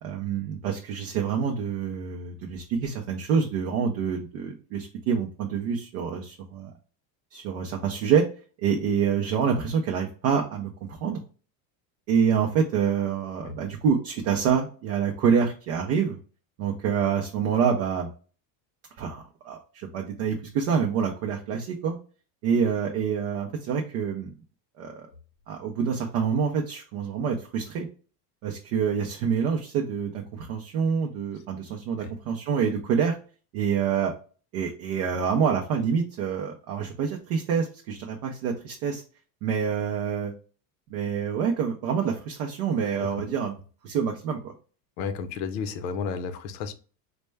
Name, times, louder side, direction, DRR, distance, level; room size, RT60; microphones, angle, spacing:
voice 1, 0.0-6.7 7.3-8.3 8.6-11.2 12.1-16.2 16.6-18.1 19.0-22.0 22.4-24.3 24.8-25.1 25.5-27.9 28.4-33.1 33.5-34.1 34.5-39.0 39.4-40.3 40.9-43.6 43.8-44.5, right 7 dB, 40° right, 0.4 m, -27 dB
voice 2, 45.0-46.7, left 6 dB, 90° left, 0.8 m, -32 dB
4.2 x 2.2 x 3.2 m
cardioid pair, 175°, 49 cm